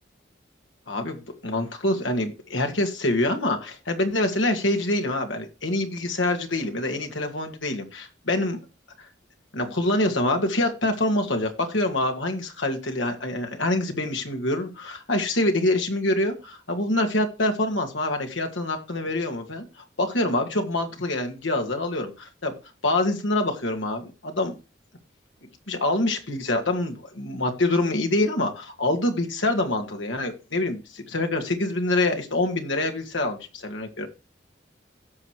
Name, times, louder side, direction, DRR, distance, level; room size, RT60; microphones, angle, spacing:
voice 1, 0.9-1.2 1.4-8.6 9.0-9.1 9.5-19.6 20.0-22.5 22.8-24.5 25.7-34.1, left 2 dB, 85° left, 4 dB, 2.2 m, -25 dB
16.5 x 6.4 x 3.2 m, 0.31 s
head